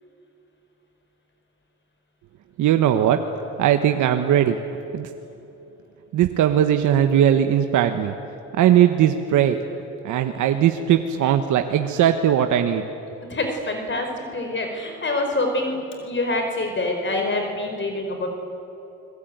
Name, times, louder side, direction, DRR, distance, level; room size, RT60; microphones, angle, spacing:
voice 1, 2.6-3.2 3.6-4.6 4.9-5.1 6.1-8.1 8.5-9.6 10.0-12.9, right 10 dB, 80° right, 7 dB, 1.3 m, -19 dB
voice 2, 13.3-18.3, left 2 dB, 40° left, 4 dB, 4.6 m, -26 dB
28.5 x 21.5 x 9.3 m, 3.0 s
cardioid pair, 90°, 30 cm